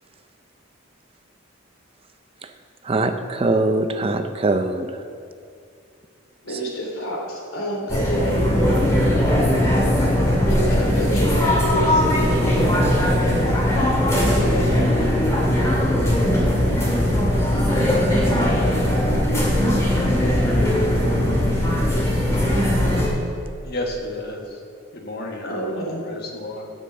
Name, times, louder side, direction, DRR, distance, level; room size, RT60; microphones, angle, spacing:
voice 1, 2.8-5.0 6.5-6.6, right 2 dB, 25° right, 8 dB, 0.5 m, -23 dB
voice 2, 6.4-8.6 10.5-13.3 14.0-14.8 25.4-26.0, right 1 dB, 80° left, -1 dB, 2.6 m, -28 dB
sound 1, 7.9-23.1, left 1 dB, 15° left, 2.2 m, -19 dB
voice 3, 23.6-24.6 24.9-26.7, left 1 dB, 50° left, 0 dB, 1.4 m, -32 dB
12.0 x 5.3 x 7.6 m, 2.3 s
head